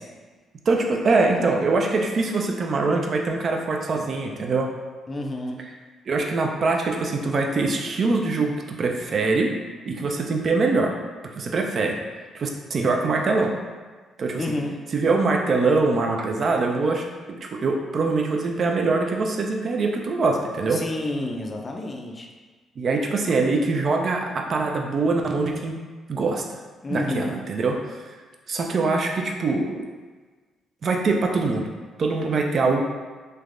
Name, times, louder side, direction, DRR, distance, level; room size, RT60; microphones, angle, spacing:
voice 1, 0.7-4.7 6.1-9.5 9.9-10.9 11.4-12.0 12.3-13.5 14.2-14.4 14.9-20.8 22.8-25.8 26.1-26.6 26.9-28.0 28.5-29.9 30.8-31.6 32.0-32.8, right 3 dB, 50° right, 2 dB, 0.3 m, -23 dB
voice 2, 5.1-5.6 14.4-14.8 20.7-22.3 26.8-27.4, left 2 dB, 30° left, 1 dB, 0.4 m, -29 dB
3.2 x 2.2 x 2.4 m, 1.4 s
cardioid pair, 90°, 0 cm